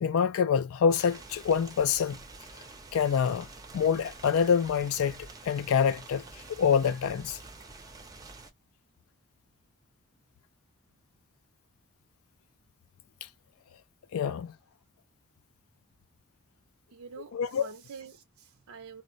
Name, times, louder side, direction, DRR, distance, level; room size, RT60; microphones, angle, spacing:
voice 1, 0.0-2.2 2.9-3.5 3.7-7.4 13.2-13.3 14.1-14.5 17.3-17.7, left 7 dB, 75° left, 0.3 m, -26 dB
sound 1, 0.9-8.5, right 3 dB, 15° right, 0.6 m, -48 dB
voice 2, 16.9-19.0, right 5 dB, 75° right, 0.5 m, -46 dB
3.8 x 2.1 x 2.5 m
head